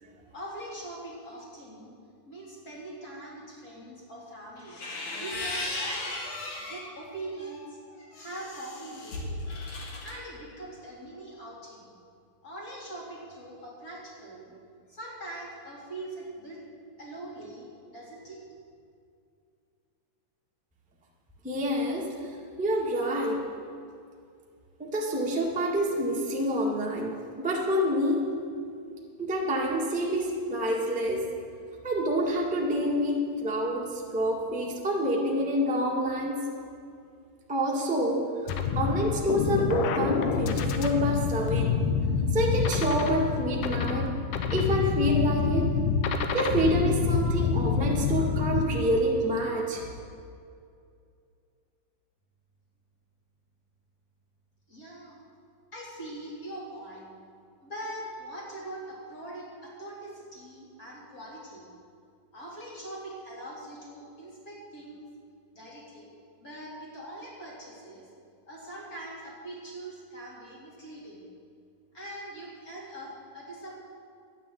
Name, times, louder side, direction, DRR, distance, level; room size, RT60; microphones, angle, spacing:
voice 1, 0.3-1.9 2.3-4.8 5.2-6.1 6.6-7.8 8.1-9.4 10.0-11.9 12.4-14.5 14.9-16.6 17.0-18.4 54.7-55.2 55.7-57.1 57.6-61.7 62.3-65.0 65.5-66.1 66.4-68.1 68.5-71.2 71.9-73.8, right 1 dB, 25° left, -5 dB, 3.7 m, -42 dB
sound 1, 4.6-6.9 7.4-10.2, left 2 dB, 45° left, 2.3 m, -36 dB
voice 2, 21.4-23.4 24.8-28.3 29.2-31.3 31.8-36.4 37.5-41.8 42.3-44.1 44.5-45.7 46.3-49.9, equal, 10° right, -3 dB, 0.4 m, -27 dB
sound 2, 38.5-48.7, left 5 dB, 75° left, 2.4 m, -27 dB
12.0 x 10.0 x 7.8 m, 2.4 s
omnidirectional pair, 3.8 m